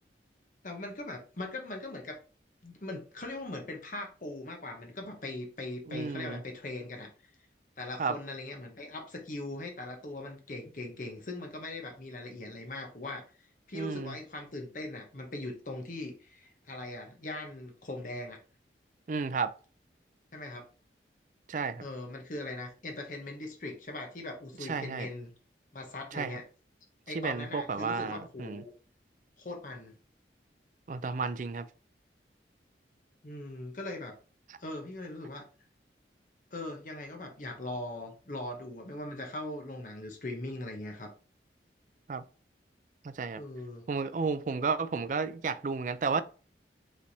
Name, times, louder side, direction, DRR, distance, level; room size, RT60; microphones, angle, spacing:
voice 1, 0.6-2.2 2.6-7.1 7.8-13.3 13.7-18.4 20.3-20.7 21.8-25.3 25.7-26.4 27.1-28.7 29.4-29.9 33.2-34.1 34.6-35.4 36.5-41.1 43.4-43.8, left 2 dB, 45° left, 0.9 m, -40 dB
voice 2, 5.9-6.4 8.0-8.2 13.7-14.1 19.1-19.5 21.5-21.8 24.6-25.1 26.1-26.4 27.1-28.6 30.9-31.7 42.1-42.2 43.0-43.4 43.9-46.2, right 4 dB, 45° right, 0.3 m, -32 dB
5.4 x 3.3 x 2.7 m
head